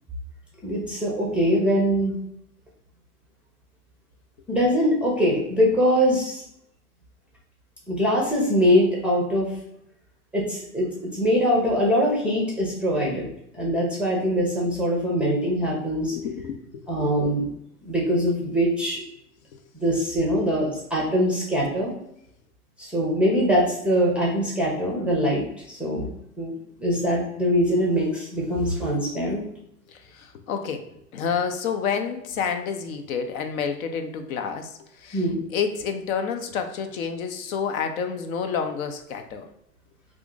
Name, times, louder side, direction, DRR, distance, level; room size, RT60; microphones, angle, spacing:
voice 1, 0.6-2.2 4.5-6.4 7.9-9.5 10.3-13.3 13.5-16.2 16.9-17.5 17.8-19.0 19.7-21.9 22.8-26.1 26.4-26.5 26.8-29.5 35.1-35.4, equal, 5° right, -3 dB, 0.5 m, -23 dB
voice 2, 16.1-17.1 19.5-19.6 29.9-39.5, left 6 dB, 65° left, 7 dB, 0.6 m, -29 dB
2.7 x 2.5 x 3.7 m, 0.75 s
hypercardioid pair, 110°, 45 cm